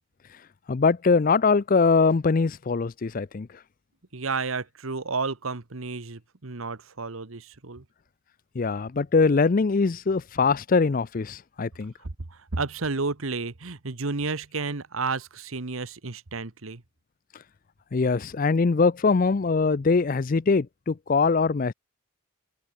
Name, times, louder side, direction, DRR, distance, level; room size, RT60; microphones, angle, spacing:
voice 1, 0.7-3.5 8.6-11.9 17.9-21.7, left 4 dB, 40° left, 0.4 m, -22 dB
voice 2, 4.1-7.8 12.0-16.8, right 4 dB, 75° right, 1.3 m, -31 dB
head